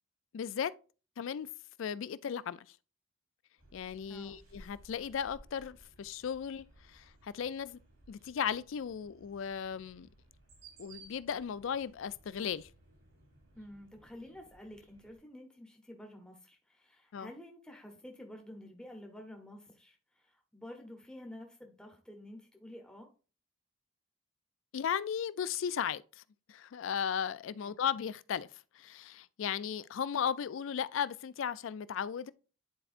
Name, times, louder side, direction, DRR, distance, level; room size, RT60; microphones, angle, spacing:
voice 1, 0.3-0.7 1.2-1.5 1.8-2.6 3.7-7.8 8.1-10.1 10.8-12.7 17.1-17.3 24.7-26.2 26.5-28.5 28.7-32.3, left 8 dB, 70° left, 0.3 m, -36 dB
sound 1, 3.6-15.2, right 2 dB, 80° right, 3.2 m, -60 dB
voice 2, 4.1-4.4 13.5-23.1 27.6-27.8, left 1 dB, 5° left, 0.8 m, -50 dB
10.0 x 4.4 x 2.5 m
head